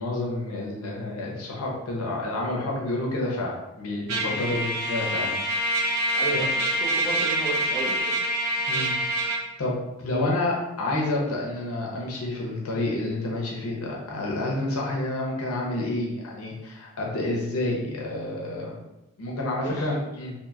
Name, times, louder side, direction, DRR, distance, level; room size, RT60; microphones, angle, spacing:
voice 1, 0.0-6.5 8.7-8.9 9.6-18.8 19.2-20.3, left 2 dB, 80° left, -2 dB, 0.7 m, -29 dB
Trumpet, 4.1-9.4, right 1 dB, 85° right, 0.6 m, -26 dB
voice 2, 6.1-8.1 19.6-19.9, right 3 dB, 15° left, -6 dB, 0.5 m, -33 dB
2.8 x 2.6 x 2.3 m, 0.96 s
head